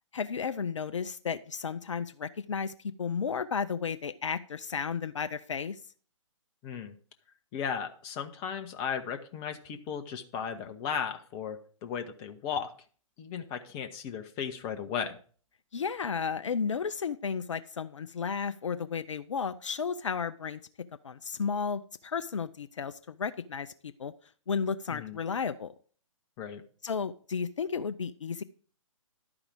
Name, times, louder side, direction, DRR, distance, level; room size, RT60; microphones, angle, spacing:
voice 1, 0.1-2.7 3.0-5.8 15.7-20.6 21.0-23.7 24.0-24.1 24.5-25.7 26.8-28.4, left 6 dB, 60° left, 11 dB, 0.5 m, -33 dB
voice 2, 6.6-6.9 7.5-12.7 13.2-15.2 24.9-25.2 26.4-26.6, left 7 dB, 20° left, 6 dB, 0.7 m, -36 dB
11.5 x 4.9 x 5.2 m, 0.43 s
figure-of-eight pair, 125°, 17 cm